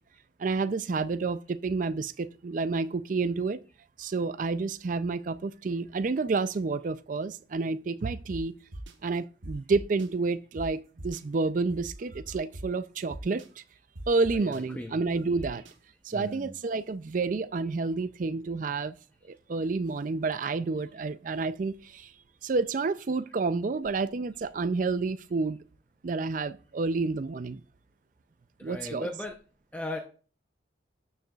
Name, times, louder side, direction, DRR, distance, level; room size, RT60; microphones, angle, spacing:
voice 1, 0.4-3.6 4.0-8.6 9.0-13.6 14.1-15.6 16.0-19.0 19.3-22.1 22.4-25.6 26.0-27.6 28.6-29.1, right 4 dB, 45° right, 0.4 m, -29 dB
sound 1, 8.3-8.4 8.7-8.9 9.4-10.1 10.6-10.7 11.0-11.2 11.7-12.6 13.1-13.5 14.0-14.6 15.4-15.7, right 1 dB, 90° right, 1.3 m, -41 dB
voice 2, 14.3-15.1 16.1-16.5 28.6-29.3 29.7-30.0, left 1 dB, 10° left, 0.7 m, -37 dB
13.0 x 6.6 x 2.4 m
head